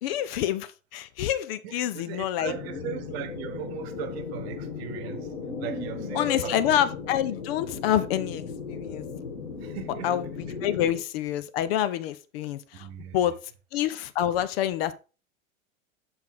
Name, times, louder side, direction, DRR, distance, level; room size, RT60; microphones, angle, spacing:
voice 1, 0.0-2.5 6.2-8.4 8.7-9.1 10.0-12.9 13.1-13.4 13.7-14.9, left 11 dB, 45° left, 0.6 m, -27 dB
voice 2, 1.6-6.6 9.6-10.2 12.7-13.2, right 11 dB, 50° right, 1.1 m, -38 dB
sound 1, 2.4-11.0, left 5 dB, 90° left, 1.5 m, -36 dB
6.1 x 5.6 x 3.6 m
hypercardioid pair, 100°, 41 cm